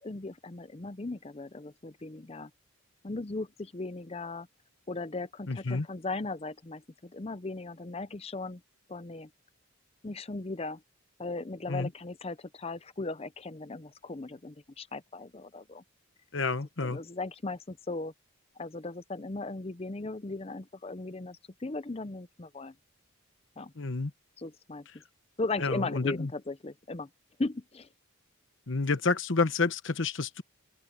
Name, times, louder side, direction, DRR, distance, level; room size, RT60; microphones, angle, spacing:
voice 1, 0.0-2.5 3.0-4.5 4.9-8.6 8.9-9.3 10.0-10.8 11.2-15.8 16.8-18.1 18.6-22.7 23.6-23.7 24.4-24.9 25.4-27.1 27.4-27.9, left 3 dB, 25° left, 0.6 m, -37 dB
voice 2, 5.5-5.9 11.7-11.9 16.3-17.0 23.8-24.1 25.6-26.3 28.7-30.4, left 3 dB, 60° left, 1.0 m, -29 dB
open air
head